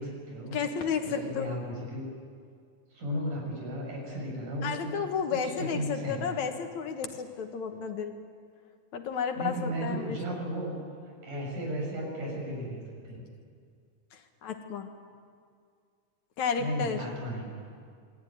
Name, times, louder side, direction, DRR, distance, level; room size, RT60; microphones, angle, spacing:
voice 1, 0.0-0.6 1.0-2.0 2.9-5.0 5.6-6.2 9.4-10.8 11.2-13.2 16.6-17.5, equal, 85° right, -1 dB, 8.3 m, -35 dB
voice 2, 0.5-1.6 4.6-8.1 8.9-10.4 14.1-14.9 16.4-17.0, left 6 dB, 70° left, 6 dB, 2.8 m, -32 dB
27.0 x 19.5 x 9.5 m, 2.2 s
omnidirectional pair, 3.5 m